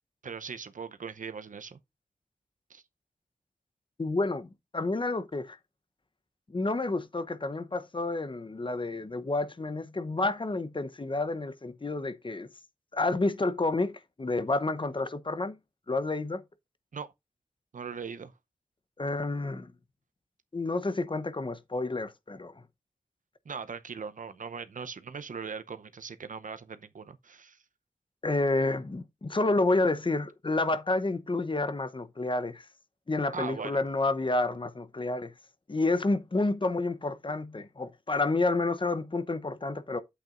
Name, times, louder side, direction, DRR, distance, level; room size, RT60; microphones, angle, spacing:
voice 1, 0.2-1.8 2.7-2.8 16.9-17.1 17.7-18.3 23.5-27.6 33.3-33.8, right 5 dB, 80° right, 0.7 m, -40 dB
voice 2, 4.0-5.6 6.5-12.5 12.9-15.6 15.9-16.4 19.0-19.7 20.5-22.5 28.2-32.6 33.1-35.3 35.7-40.0, left 2 dB, 40° left, 0.9 m, -29 dB
9.0 x 8.1 x 2.5 m
wide cardioid pair, 55°, 13 cm